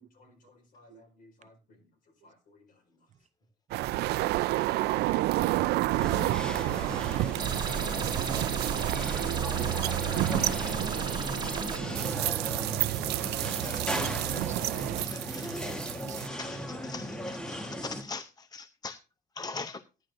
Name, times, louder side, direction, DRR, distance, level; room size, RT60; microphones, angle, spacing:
voice 1, 0.2-1.5 2.2-2.7 6.5-7.4 8.9-9.1 9.6-12.3 12.9-13.4 17.0-17.1, left 2 dB, 55° left, 4.9 m, -58 dB
sound 1, 3.7-16.3, right 17 dB, 80° right, 0.4 m, -30 dB
voice 2, 6.0-6.3 6.6-7.5 8.3-8.4 10.7-11.5 11.8-12.1 12.6-12.7 13.6-19.0 19.4-19.8, left 4 dB, 25° left, 0.6 m, -44 dB
sound 2, 6.0-18.0, equal, 5° left, 1.4 m, -37 dB
sound 3, 7.4-11.8, right 4 dB, 25° right, 1.4 m, -35 dB
voice 3, 14.9-15.5 16.0-16.3, right 8 dB, 45° right, 0.8 m, -53 dB
16.0 x 10.5 x 2.6 m
cardioid pair, 110°, 17 cm